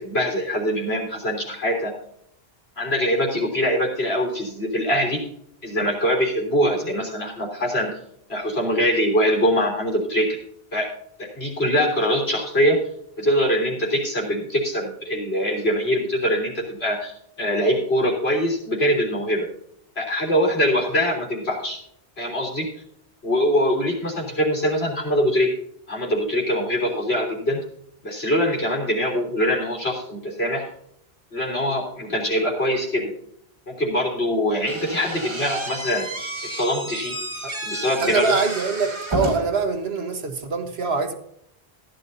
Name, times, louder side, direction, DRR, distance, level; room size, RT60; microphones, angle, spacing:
voice 1, 0.0-1.9 2.8-5.2 5.6-7.9 8.3-10.4 10.7-10.9 11.2-12.8 13.2-19.5 20.0-21.8 22.2-22.7 23.2-25.5 25.9-27.6 28.0-30.7 31.3-33.1 33.7-36.1 36.5-37.2 37.6-38.3, equal, 85° left, -1 dB, 3.6 m, -23 dB
Slam / Squeak, 34.7-39.6, right 1 dB, 30° right, 1.5 m, -31 dB
voice 2, 38.0-41.1, right 4 dB, 80° right, 7 dB, 1.5 m, -24 dB
15.0 x 11.0 x 2.7 m, 0.70 s
omnidirectional pair, 1.0 m